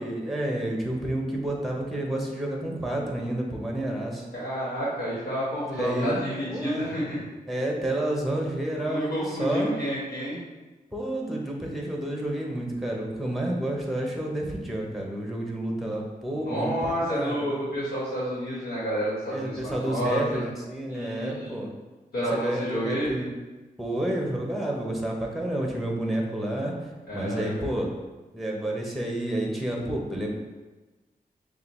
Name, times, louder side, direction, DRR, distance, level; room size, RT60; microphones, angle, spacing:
voice 1, 0.0-4.3 5.7-7.0 7.5-9.7 10.9-17.7 19.3-21.7 22.3-23.3 23.8-27.9 28.3-30.3, right 1 dB, ahead, 0 dB, 0.8 m, -30 dB
voice 2, 4.3-7.2 8.8-10.4 16.5-20.4 20.9-21.6 22.1-23.1 27.1-27.7, equal, 90° left, -7 dB, 1.3 m, -30 dB
6.5 x 2.3 x 3.0 m, 1.2 s
wide cardioid pair, 110°, 16 cm